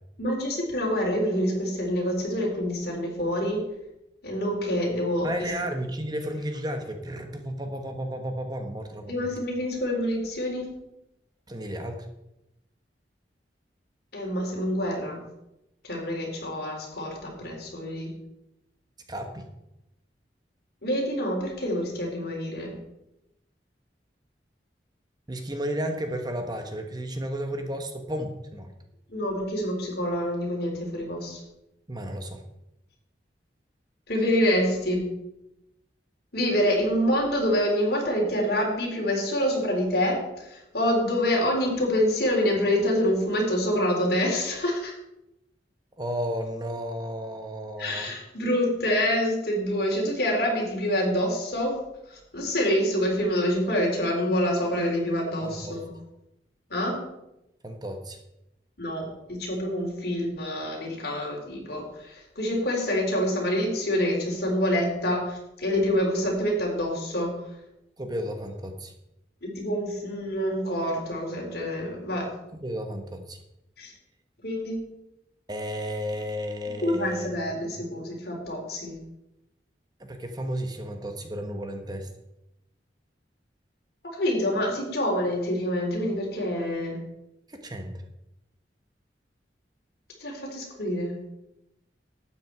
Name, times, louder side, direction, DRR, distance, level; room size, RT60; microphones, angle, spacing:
voice 1, 0.2-3.6 4.2-5.3 9.1-10.6 14.1-15.2 15.8-18.1 20.8-22.7 29.1-31.4 34.1-35.1 36.3-44.9 47.8-51.7 52.1-55.9 56.7-56.9 58.8-67.3 69.4-72.3 73.8-73.9 74.4-74.8 76.8-79.0 84.1-87.0 90.2-91.2, equal, 65° left, -1 dB, 3.9 m, -26 dB
voice 2, 5.2-9.3 11.5-12.1 19.1-19.4 25.3-28.7 31.9-32.4 46.0-48.1 55.4-55.8 57.6-58.2 68.0-68.9 72.6-73.4 75.5-77.3 77.6-77.8 80.0-82.1 87.5-87.9, equal, 25° right, 5 dB, 1.1 m, -33 dB
12.0 x 8.9 x 4.8 m, 0.87 s
head